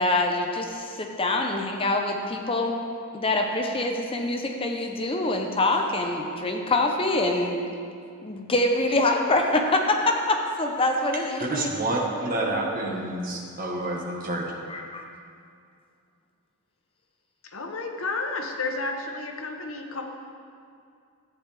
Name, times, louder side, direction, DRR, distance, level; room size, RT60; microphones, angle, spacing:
voice 1, 0.0-2.8 3.1-7.7 8.2-11.7 14.7-15.0, left 2 dB, 25° left, 3 dB, 0.7 m, -25 dB
voice 2, 11.5-14.5, right 2 dB, 40° right, -1 dB, 1.4 m, -28 dB
voice 3, 17.5-20.0, left 3 dB, 70° left, 3 dB, 1.0 m, -31 dB
13.5 x 9.1 x 3.4 m, 2.3 s
head